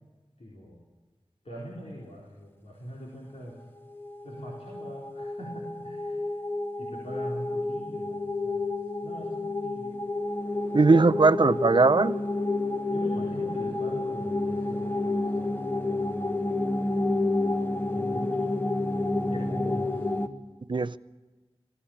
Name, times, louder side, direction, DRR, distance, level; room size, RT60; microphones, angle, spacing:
voice 1, 0.4-0.8 1.4-3.6 4.2-6.4 6.8-8.7 9.0-10.0 12.9-15.4 17.9-18.5 19.2-20.1, equal, 90° left, 4.4 m, -42 dB
sound 1, 3.9-20.3, left 2 dB, 20° left, 1.4 m, -30 dB
voice 2, 10.7-12.2 20.7-21.0, right 3 dB, 50° right, 0.6 m, -20 dB
20.0 x 15.5 x 8.8 m
wide cardioid pair, 50°, 10 cm